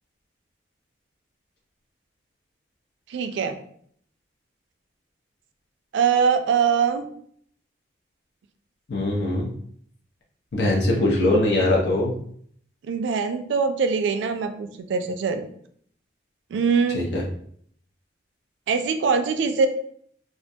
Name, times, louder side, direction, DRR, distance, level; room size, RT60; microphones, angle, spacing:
voice 1, 3.1-3.6 5.9-7.1 12.8-15.4 16.5-17.0 18.7-19.7, right 6 dB, 80° right, 7 dB, 0.3 m, -22 dB
voice 2, 8.9-9.5 10.5-12.1 16.9-17.2, left 1 dB, 75° left, -2 dB, 0.6 m, -21 dB
2.4 x 2.2 x 2.6 m, 0.62 s
head